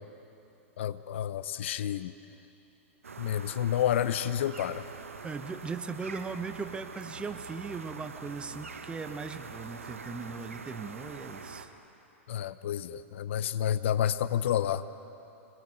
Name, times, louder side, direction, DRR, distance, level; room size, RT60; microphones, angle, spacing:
voice 1, 0.8-2.1 3.2-4.8 12.3-14.8, left 10 dB, 65° left, 14 dB, 0.8 m, -29 dB
sound 1, 3.0-11.7, right 5 dB, 80° right, 1.5 m, -44 dB
voice 2, 5.2-11.7, right 4 dB, 15° right, 9 dB, 1.2 m, -38 dB
26.5 x 20.5 x 8.0 m, 2.9 s
figure-of-eight pair, 100°, 7 cm